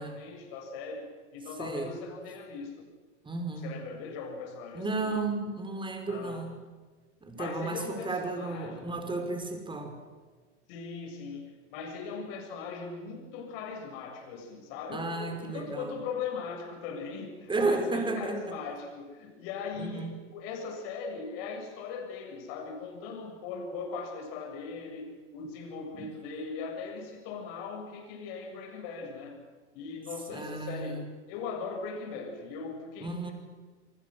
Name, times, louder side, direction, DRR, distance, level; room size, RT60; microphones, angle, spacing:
voice 1, 0.0-2.9 3.6-5.0 6.1-6.4 7.3-8.9 10.7-29.4 29.7-33.3, left 5 dB, 55° left, 3 dB, 7.4 m, -39 dB
voice 2, 1.6-1.9 3.2-3.8 4.7-6.6 7.2-10.0 14.9-15.9 17.5-18.6 19.8-20.1 25.9-26.1 30.3-31.0 33.0-33.3, right 3 dB, 15° right, 6 dB, 5.2 m, -33 dB
28.0 x 24.5 x 6.5 m, 1.4 s
figure-of-eight pair, 90°, 35 cm